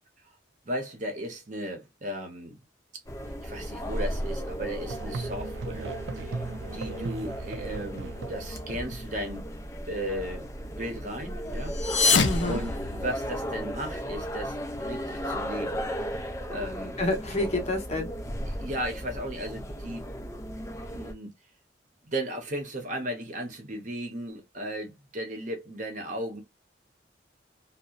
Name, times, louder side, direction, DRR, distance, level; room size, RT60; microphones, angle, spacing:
voice 1, 0.7-2.6 3.4-5.9 6.1-6.4 6.7-9.5 9.9-10.5 10.8-15.8 16.1-17.0 18.5-20.1 20.9-21.3 22.0-26.4, right 1 dB, 40° right, 0.8 m, -36 dB
sound 1, 3.1-21.1, equal, 15° left, 0.4 m, -35 dB
Musical instrument, 4.8-9.7, right 4 dB, 90° right, 0.4 m, -38 dB
sound 2, 11.7-13.5, left 4 dB, 75° left, 0.5 m, -25 dB
voice 2, 12.2-12.6 17.0-18.1, left 2 dB, 35° left, 0.8 m, -28 dB
2.8 x 2.0 x 2.4 m
head